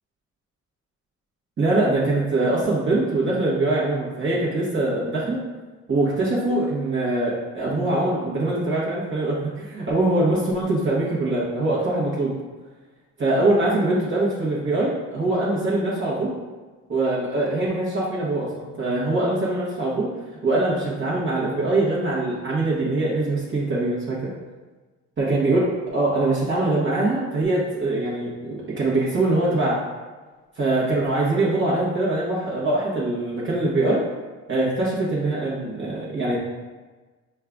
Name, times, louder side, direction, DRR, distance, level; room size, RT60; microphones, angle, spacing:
voice 1, 1.6-5.4 5.9-12.3 13.2-16.3 16.9-20.1 20.4-24.3 25.2-29.8 30.6-34.0 34.5-36.4, right 2 dB, 40° right, -7 dB, 1.1 m, -23 dB
5.4 x 2.3 x 3.7 m, 1.3 s
cardioid pair, 90°, 30 cm